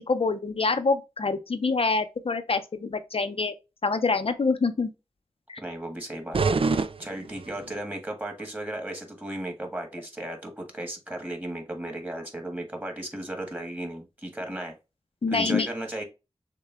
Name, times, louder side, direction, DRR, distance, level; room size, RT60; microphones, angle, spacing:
voice 1, 0.0-3.5 3.8-4.9 5.5-5.6 15.2-15.7, left 4 dB, 65° left, 0.6 m, -26 dB
voice 2, 5.6-14.7 15.3-16.0, right 1 dB, 15° right, 1.7 m, -35 dB
sound 1, 6.3-7.8, right 4 dB, 60° right, 0.4 m, -27 dB
6.6 x 2.2 x 3.4 m
wide cardioid pair, 60°, 11 cm